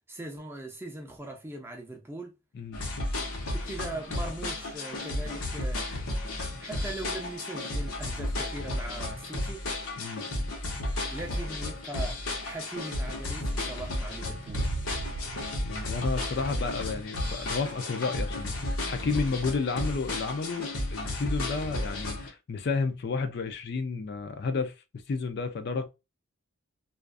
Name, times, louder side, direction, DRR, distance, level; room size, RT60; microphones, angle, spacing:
voice 1, 0.1-2.3 3.5-5.9 6.6-9.7 11.1-14.7, right 2 dB, 10° right, 0.4 m, -40 dB
sound 1, 2.7-22.3, left 1 dB, 85° left, 0.8 m, -33 dB
Boom, 14.5-17.4, right 3 dB, 80° right, 0.4 m, -39 dB
voice 2, 15.6-24.7 25.1-25.9, left 4 dB, 50° left, 0.4 m, -31 dB
2.4 x 2.3 x 2.3 m
head